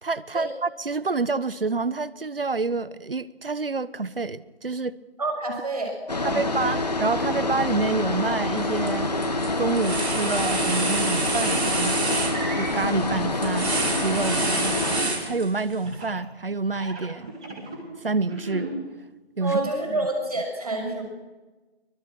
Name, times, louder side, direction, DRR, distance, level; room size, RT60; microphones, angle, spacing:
voice 1, 0.0-5.0 6.2-9.1 9.6-12.0 12.5-14.8 15.2-17.3 18.0-18.7 19.4-20.1, right 3 dB, 60° right, 1.1 m, -28 dB
voice 2, 5.2-6.7 14.3-14.4 19.4-21.0, right 2 dB, 35° right, 6.1 m, -28 dB
sound 1, 6.1-15.0, left 2 dB, 40° left, 2.1 m, -27 dB
sound 2, 8.6-8.9 9.2-15.7, right 2 dB, 85° right, 5.8 m, -28 dB
sound 3, 11.4-11.6 12.2-12.9 13.7-14.3 15.8-16.2 16.7-17.8 18.2-18.7, right 3 dB, 5° right, 2.0 m, -36 dB
24.5 x 20.5 x 6.1 m
figure-of-eight pair, 180°, 31 cm